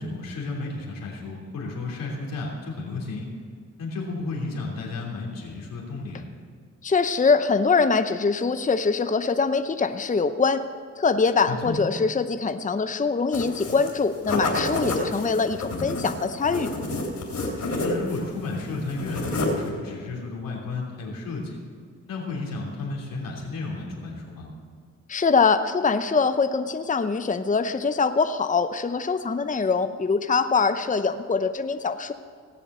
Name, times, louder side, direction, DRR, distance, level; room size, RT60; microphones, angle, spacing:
voice 1, 0.0-3.3 3.8-6.2 11.5-11.8 17.8-21.6 22.0-24.5, left 3 dB, 90° left, -2 dB, 3.2 m, -33 dB
voice 2, 6.8-10.6 11.0-16.7 25.1-32.1, left 4 dB, 25° left, 9 dB, 0.7 m, -23 dB
sound 1, 13.3-14.0 14.2-18.3 18.5-19.7, left 2 dB, 60° left, 3.5 m, -29 dB
18.0 x 7.3 x 6.7 m, 2.1 s
cardioid pair, 55°, 33 cm